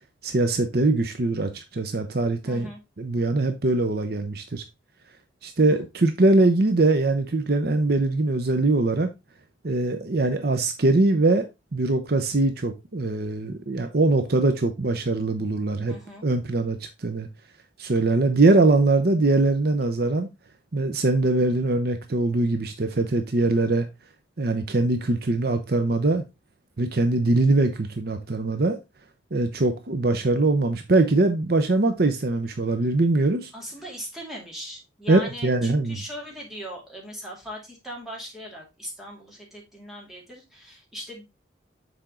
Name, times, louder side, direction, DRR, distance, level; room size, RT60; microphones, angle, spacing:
voice 1, 0.2-2.7 3.0-4.6 5.4-9.1 9.6-11.4 11.7-15.9 16.2-17.3 17.8-20.3 20.7-23.9 24.4-26.2 26.8-28.8 29.3-33.5 35.1-36.0, right 2 dB, 55° right, 0.7 m, -22 dB
voice 2, 2.4-2.8 5.6-5.8 15.9-16.3 33.5-41.2, equal, ahead, 2.4 m, -39 dB
6.9 x 4.4 x 3.7 m
head